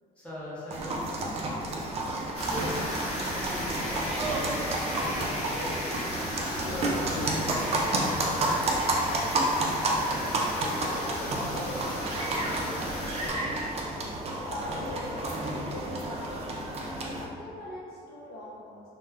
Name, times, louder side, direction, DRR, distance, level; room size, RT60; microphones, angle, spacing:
voice 1, 0.2-1.2 2.4-5.9 6.6-9.0 12.2-12.4, left 1 dB, 5° left, -9 dB, 0.8 m, -40 dB
sound 1, 0.7-17.3, right 2 dB, 40° right, 0.4 m, -30 dB
sound 2, 2.3-13.3, equal, 35° left, 1.0 m, -35 dB
voice 2, 10.8-13.7 14.4-16.9 17.4-18.8, left 1 dB, 65° left, -6 dB, 0.7 m, -43 dB
2.3 x 2.1 x 3.3 m, 2.3 s
cardioid pair, 110°, 17 cm